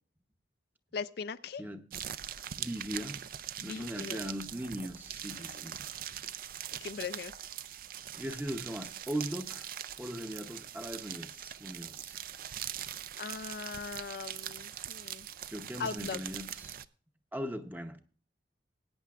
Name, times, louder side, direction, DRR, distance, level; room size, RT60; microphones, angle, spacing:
voice 1, 0.9-1.6 3.6-4.3 5.3-5.6 6.8-7.3 13.2-15.3 15.8-16.2, left 5 dB, 60° left, 0.4 m, -40 dB
sound 1, 1.9-16.9, right 10 dB, 50° right, 0.4 m, -42 dB
voice 2, 2.6-3.3 3.6-5.7 8.1-9.7 10.0-12.2 15.5-16.8 17.3-18.0, equal, 10° right, 0.8 m, -39 dB
20.5 x 9.3 x 2.4 m
head